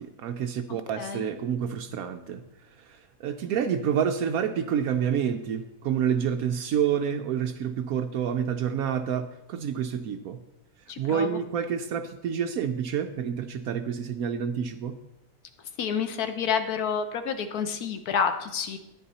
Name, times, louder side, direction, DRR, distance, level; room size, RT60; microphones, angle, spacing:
voice 1, 0.0-2.4 2.9-10.4 11.0-15.0, right 8 dB, 85° right, 7 dB, 0.7 m, -28 dB
voice 2, 1.0-1.3 10.9-11.4 15.8-18.8, left 6 dB, 60° left, 8 dB, 1.2 m, -29 dB
10.0 x 9.3 x 4.1 m, 0.90 s
omnidirectional pair, 2.1 m